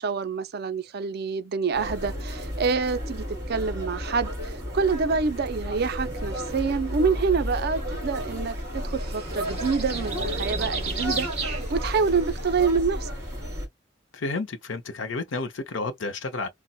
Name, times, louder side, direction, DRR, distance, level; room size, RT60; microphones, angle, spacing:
voice 1, 0.0-13.1, right 5 dB, 55° right, 0.4 m, -27 dB
sound 1, 1.7-13.7, equal, 15° right, 2.2 m, -32 dB
sound 2, 5.3-12.6, right 4 dB, 35° right, 1.9 m, -37 dB
voice 2, 14.1-16.5, left 3 dB, 70° left, 0.6 m, -31 dB
4.0 x 2.1 x 2.2 m
head